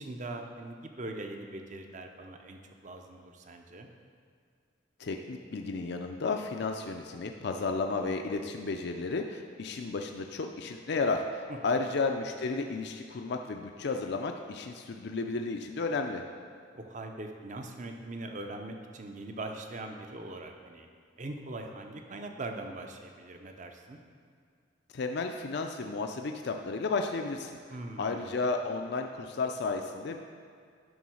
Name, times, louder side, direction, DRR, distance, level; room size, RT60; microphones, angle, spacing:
voice 1, 0.0-3.9 11.5-11.9 16.7-20.9 21.2-24.0 27.7-28.3, right 2 dB, 40° right, 4 dB, 0.7 m, -41 dB
voice 2, 5.0-16.2 24.9-27.6 28.0-30.2, left 3 dB, 60° left, 4 dB, 0.5 m, -33 dB
11.0 x 3.8 x 6.3 m, 2.2 s
head